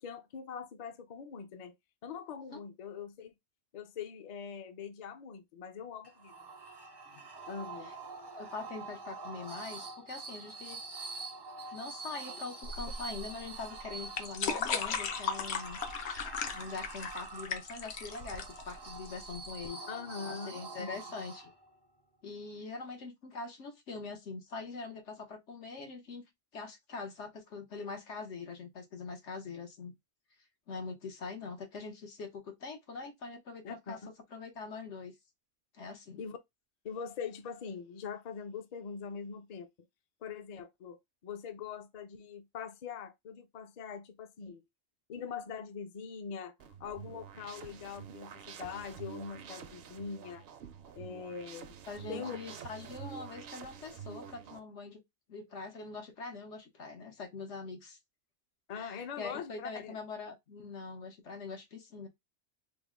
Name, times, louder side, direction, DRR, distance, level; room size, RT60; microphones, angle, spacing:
voice 1, 0.0-1.7 2.0-3.3 3.7-6.3 7.5-7.9 19.9-21.0 33.6-34.0 36.2-36.4 36.8-39.7 40.2-44.6 45.1-46.5 46.8-50.4 50.9-51.8 52.1-52.4 58.7-60.0, left 6 dB, 50° left, 0.5 m, -42 dB
sound 1, 6.0-21.8, right 3 dB, 35° right, 0.4 m, -46 dB
voice 2, 8.4-10.8 11.7-15.8 16.1-16.2 16.5-19.8 20.2-21.5 22.2-26.2 26.5-29.9 30.7-34.0 34.3-35.1 35.7-36.2 51.9-55.0 55.3-58.0 58.7-62.1, left 4 dB, 90° left, 1.3 m, -43 dB
sound 2, 12.6-19.7, left 6 dB, 70° left, 0.9 m, -37 dB
sound 3, 46.6-54.6, right 7 dB, 65° right, 0.7 m, -48 dB
3.5 x 2.1 x 3.5 m
omnidirectional pair, 1.2 m